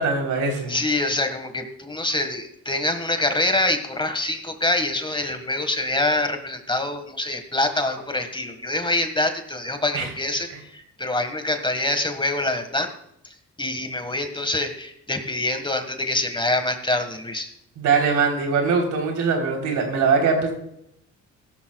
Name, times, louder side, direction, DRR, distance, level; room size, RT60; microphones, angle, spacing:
voice 1, 0.0-0.8 9.9-10.1 10.5-10.6 17.8-20.5, right 5 dB, 75° right, 2 dB, 3.7 m, -22 dB
voice 2, 0.7-12.9 13.2-17.5, left 2 dB, 15° left, 7 dB, 1.7 m, -25 dB
16.5 x 12.5 x 2.4 m, 0.75 s
cardioid pair, 90°, 30 cm